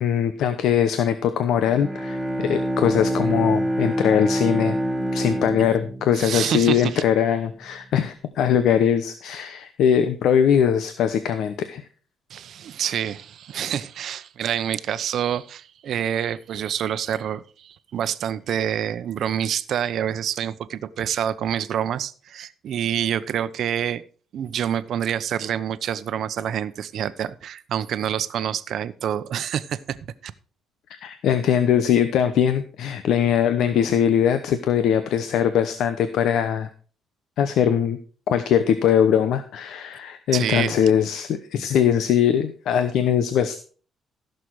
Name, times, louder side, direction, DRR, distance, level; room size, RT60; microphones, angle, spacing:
voice 1, 0.0-4.8 5.1-11.8 30.9-36.7 37.4-38.0 38.3-43.6, left 9 dB, 75° left, 11 dB, 0.9 m, -21 dB
Bowed string instrument, 1.6-7.2, right 1 dB, 5° left, 1.5 m, -26 dB
voice 2, 6.1-7.0 12.3-24.0 24.3-30.0 30.2-30.3 40.3-40.8, right 9 dB, 60° right, 13 dB, 0.8 m, -27 dB
15.5 x 6.7 x 4.7 m, 0.40 s
cardioid pair, 135°, 0 cm